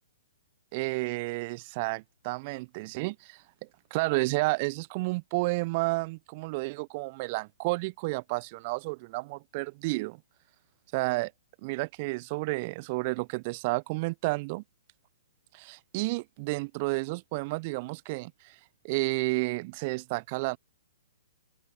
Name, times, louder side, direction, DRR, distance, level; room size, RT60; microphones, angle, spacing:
voice 1, 0.7-3.4 3.9-10.2 10.9-11.3 11.6-14.6 15.5-18.5 18.8-20.6, right 25 dB, 35° right, 0.8 m, -31 dB
open air
figure-of-eight pair, 120°, 0 cm